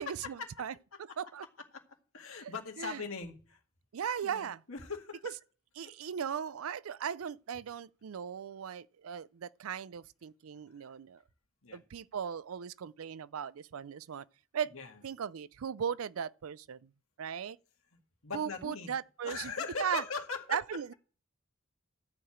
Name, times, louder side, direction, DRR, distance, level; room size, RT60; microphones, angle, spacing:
voice 1, 0.0-1.5 2.4-3.0 3.9-4.6 5.2-5.3 5.8-11.2 11.7-14.2 14.5-14.7 15.0-16.9 17.2-17.6 18.3-19.5 19.8-20.0 20.5-20.9, right 8 dB, 80° right, 0.4 m, -38 dB
voice 2, 2.1-3.6 4.2-5.4 5.8-5.9 10.8-10.9 11.6-11.8 14.7-14.9 18.2-18.9 19.2-20.6, left 4 dB, 80° left, 2.1 m, -40 dB
13.0 x 4.8 x 8.6 m
head